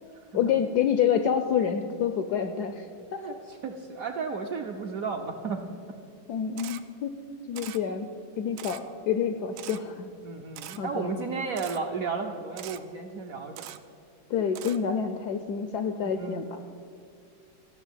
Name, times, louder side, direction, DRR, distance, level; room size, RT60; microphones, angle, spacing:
voice 1, 0.3-2.9 3.1-3.2 6.3-7.2 7.5-8.1 8.4-10.1 10.8-11.1 14.3-16.6, left 8 dB, 75° left, 8 dB, 0.9 m, -28 dB
voice 2, 3.2-5.7 10.2-13.7 16.0-16.4, right 5 dB, 65° right, 3 dB, 0.9 m, -34 dB
Camera, 6.6-6.8 7.6-7.8 8.6-8.8 9.6-9.8 10.6-10.8 11.6-11.8 12.6-12.8 13.6-13.8 14.6-14.8, right 13 dB, 80° right, 1.4 m, -41 dB
14.0 x 6.2 x 9.0 m, 2.4 s
omnidirectional pair, 2.2 m